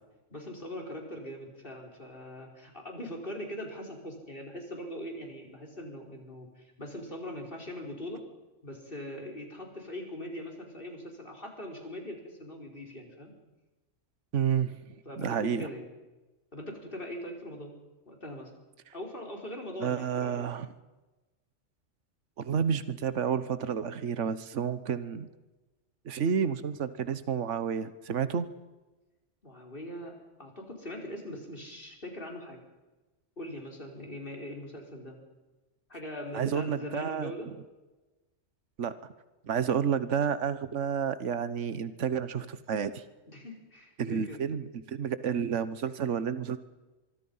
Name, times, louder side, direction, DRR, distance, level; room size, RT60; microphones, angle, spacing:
voice 1, 0.3-8.2 8.6-13.3 15.1-15.9 16.5-17.7 18.1-18.5 18.9-20.5 29.4-32.6 33.4-35.2 35.9-37.5 43.3-44.4, left 1 dB, 45° left, 1 dB, 5.3 m, -41 dB
voice 2, 14.3-14.8 15.2-15.7 19.8-20.7 22.4-25.3 26.0-28.5 36.3-37.3 38.8-38.9 39.4-43.0 44.0-46.6, right 7 dB, 70° right, 13 dB, 1.5 m, -30 dB
24.5 x 24.5 x 5.7 m, 1.1 s
omnidirectional pair, 1.3 m